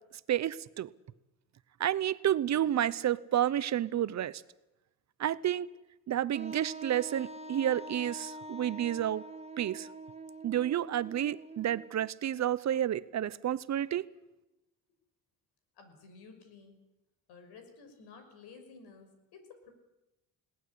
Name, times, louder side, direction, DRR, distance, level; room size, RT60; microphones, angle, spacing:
voice 1, 0.3-0.9 1.8-4.4 5.2-5.7 6.1-9.2 9.6-9.9 10.4-14.0, right 11 dB, 45° right, 18 dB, 0.7 m, -30 dB
Wind instrument woodwind instrument, 6.3-12.1, right 1 dB, 15° right, 1.2 m, -45 dB
voice 2, 15.7-16.8 17.3-19.7, left 4 dB, 80° left, 7 dB, 5.8 m, -53 dB
21.0 x 18.0 x 8.4 m, 0.97 s
cardioid pair, 120°, 38 cm